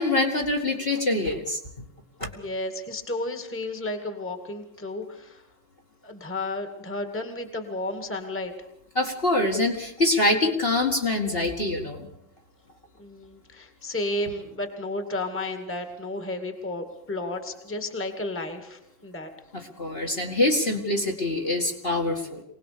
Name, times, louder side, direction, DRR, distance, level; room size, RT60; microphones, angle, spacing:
voice 1, 0.0-1.6 2.2-2.3 9.0-12.1 19.5-22.4, left 2 dB, 30° left, 0 dB, 2.2 m, -25 dB
voice 2, 2.4-5.4 6.0-8.5 13.0-19.3, left 2 dB, 5° left, 7 dB, 2.0 m, -32 dB
24.0 x 19.0 x 6.9 m, 0.76 s
omnidirectional pair, 2.0 m